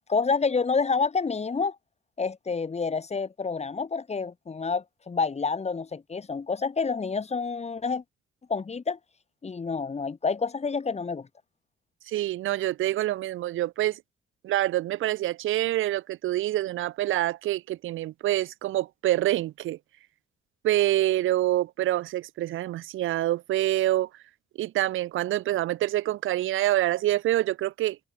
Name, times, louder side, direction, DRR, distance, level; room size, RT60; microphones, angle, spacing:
voice 1, 0.1-1.7 2.2-8.0 8.5-9.0 9.4-11.3, left 5 dB, 35° left, 4.9 m, -28 dB
voice 2, 12.1-14.0 14.4-19.8 20.6-24.1 24.6-28.0, right 14 dB, 85° right, 3.8 m, -26 dB
cardioid pair, 90°, 20 cm